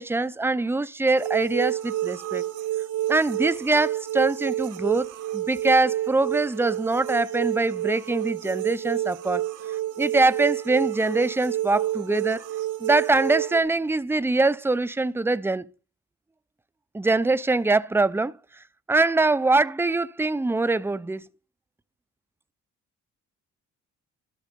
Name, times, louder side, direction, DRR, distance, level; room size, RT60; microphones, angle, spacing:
voice 1, 0.0-2.4 3.1-5.1 5.3-9.4 10.0-12.4 12.8-15.6 16.9-18.3 18.9-21.2, right 3 dB, 10° right, 0.6 m, -23 dB
sound 1, 1.2-13.6, right 13 dB, 90° right, 1.6 m, -29 dB
12.5 x 6.2 x 5.3 m
cardioid pair, 90°, 30 cm